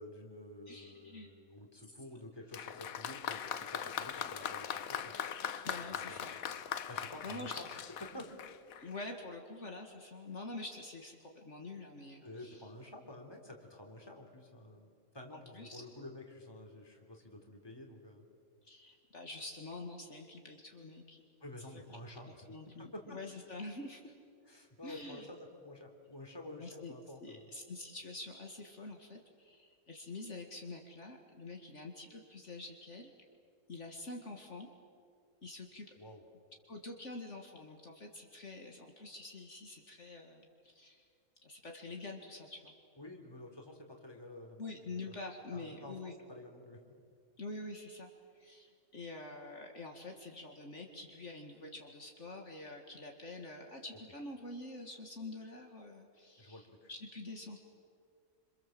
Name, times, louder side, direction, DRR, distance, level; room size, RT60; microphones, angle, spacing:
voice 1, 0.0-5.1 5.9-6.4 6.9-7.7 8.1-8.3 12.2-14.9 15.1-18.2 21.4-22.5 22.8-23.2 24.4-27.5 36.0-36.2 43.0-44.6 44.9-45.1 45.5-46.8 56.4-56.9, left 1 dB, 15° left, 2 dB, 3.3 m, -50 dB
voice 2, 0.7-1.3 5.6-6.3 7.2-7.5 8.8-12.6 15.3-15.8 18.6-21.2 21.7-21.8 22.3-24.1 24.8-25.3 26.6-26.9 27.2-33.1 33.7-34.7 35.4-35.9 36.7-41.1 41.4-42.7 44.6-46.1 47.4-48.1 48.4-57.6, left 2 dB, 55° left, 2 dB, 2.3 m, -46 dB
Applause, 2.5-9.0, left 8 dB, 80° left, 1.4 m, -40 dB
27.0 x 27.0 x 7.7 m, 2.3 s
omnidirectional pair, 1.5 m